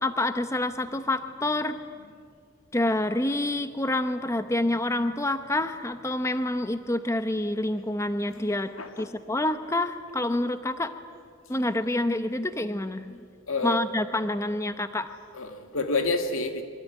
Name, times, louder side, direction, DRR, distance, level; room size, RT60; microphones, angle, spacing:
voice 1, 0.0-1.8 2.7-8.7 9.0-10.9 11.5-13.2 13.6-15.1, left 1 dB, 15° left, 0.8 m, -27 dB
voice 2, 8.8-9.1 13.5-13.8 15.3-16.6, left 3 dB, 85° left, 2.2 m, -28 dB
25.5 x 23.5 x 9.3 m
head